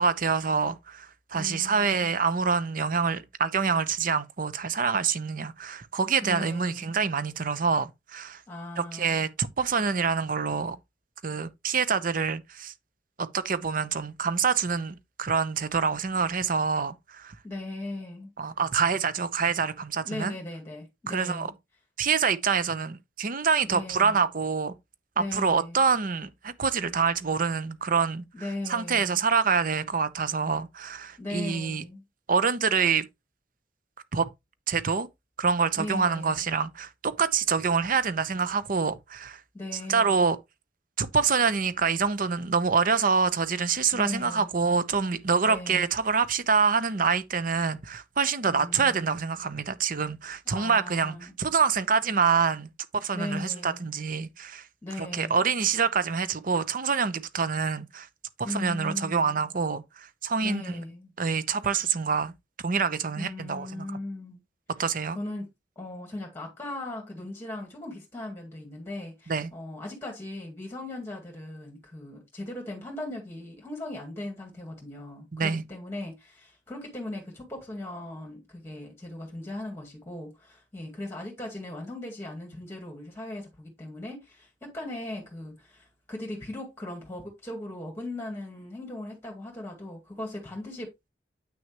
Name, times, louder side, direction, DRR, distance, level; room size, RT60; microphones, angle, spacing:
voice 1, 0.0-8.4 8.8-10.8 11.2-12.7 13.2-17.3 18.4-20.3 21.1-21.5 22.0-24.7 25.2-28.2 28.7-31.8 32.3-33.1 34.1-34.3 34.7-35.1 35.4-39.4 39.9-40.4 41.0-54.6 55.0-58.1 58.4-60.8 61.2-62.3 62.6-63.9 64.8-65.2 69.3-69.5 75.3-75.6, right 5 dB, 50° right, 0.8 m, -26 dB
voice 2, 1.3-2.1 6.2-6.9 8.5-9.2 17.4-18.3 20.0-21.5 23.7-24.2 25.2-25.8 28.3-29.2 31.2-32.0 35.8-36.5 39.5-40.3 43.9-44.5 45.4-46.0 48.5-49.1 50.5-51.4 53.1-54.0 54.8-55.4 58.4-59.4 60.4-61.1 63.2-64.4 65.1-65.5 65.8-90.9, left 1 dB, 15° left, 2.1 m, -38 dB
8.7 x 6.3 x 3.0 m
head